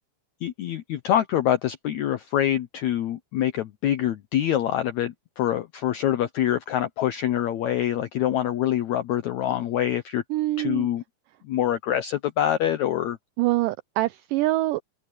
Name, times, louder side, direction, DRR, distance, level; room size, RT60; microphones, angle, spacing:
voice 1, 0.4-10.2 10.6-11.0 11.4-13.2, left 11 dB, 80° left, 1.6 m, -25 dB
voice 2, 10.3-10.9 13.4-14.8, right 17 dB, 90° right, 1.9 m, -24 dB
omnidirectional pair, 4.4 m